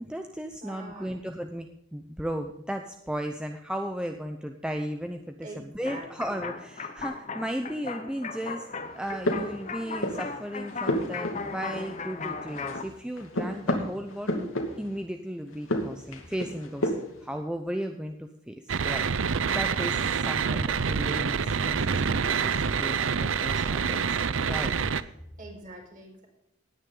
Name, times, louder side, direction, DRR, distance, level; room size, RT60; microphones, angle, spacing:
voice 1, 0.0-8.7 8.9-14.5 14.8-16.9 17.2-19.1 19.5-24.2 24.5-24.7 25.0-25.1, equal, 5° right, 5 dB, 0.8 m, -35 dB
voice 2, 0.6-1.1 5.4-6.5 25.4-26.3, right 2 dB, 40° right, 0 dB, 5.0 m, -44 dB
sound 1, 5.9-12.8, left 4 dB, 35° left, 1.2 m, -37 dB
sound 2, 8.9-10.3 10.7-12.2 12.5-15.0 15.5-17.2, left 1 dB, 85° left, 2.5 m, -31 dB
sound 3, 18.7-25.0, right 6 dB, 70° right, 0.6 m, -27 dB
18.0 x 9.8 x 3.9 m, 0.81 s
head